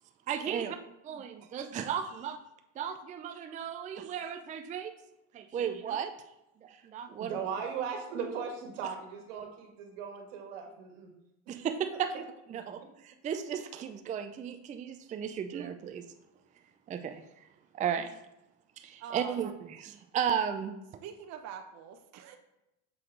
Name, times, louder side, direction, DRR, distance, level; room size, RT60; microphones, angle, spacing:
voice 1, 0.3-0.8 1.0-2.4 2.8-4.9 5.3-6.1 6.6-7.4 11.5-12.2 12.5-16.0 16.9-17.5 17.7-18.2 18.8-20.8, right 8 dB, 20° right, 7 dB, 0.4 m, -35 dB
voice 2, 7.2-11.1, right 6 dB, 85° right, 3 dB, 1.5 m, -38 dB
voice 3, 19.0-19.4 21.0-22.4, right 8 dB, 50° right, 5 dB, 0.7 m, -44 dB
6.2 x 4.5 x 3.8 m, 0.88 s
supercardioid pair, 105°, 36 cm